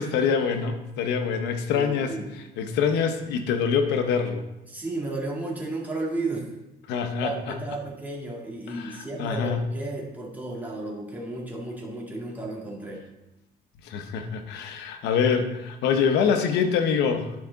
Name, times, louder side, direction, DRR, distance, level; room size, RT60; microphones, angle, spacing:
voice 1, 0.0-2.1 2.6-4.4 6.9-7.5 8.7-9.6 13.8-17.3, left 6 dB, 85° left, 7 dB, 1.0 m, -25 dB
voice 2, 1.7-2.3 4.7-6.5 7.2-13.0, right 2 dB, 10° right, -3 dB, 2.2 m, -33 dB
11.5 x 4.8 x 4.0 m, 0.94 s
cardioid pair, 110°, 17 cm